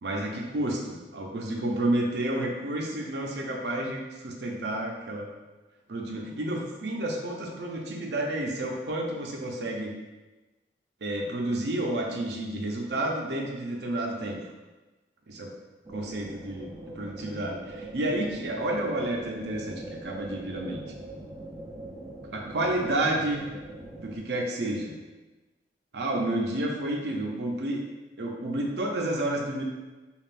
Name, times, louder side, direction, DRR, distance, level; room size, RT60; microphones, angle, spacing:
voice 1, 0.0-5.3 5.9-9.9 11.0-14.4 15.3-15.5 15.9-16.7 17.0-20.8 22.3-23.4 24.0-24.9 25.9-27.8 28.2-29.6, right 1 dB, 65° right, 0 dB, 0.6 m, -30 dB
sound 1, 15.8-24.2, right 1 dB, 20° right, 0.3 m, -42 dB
5.3 x 2.4 x 2.5 m, 1.1 s
head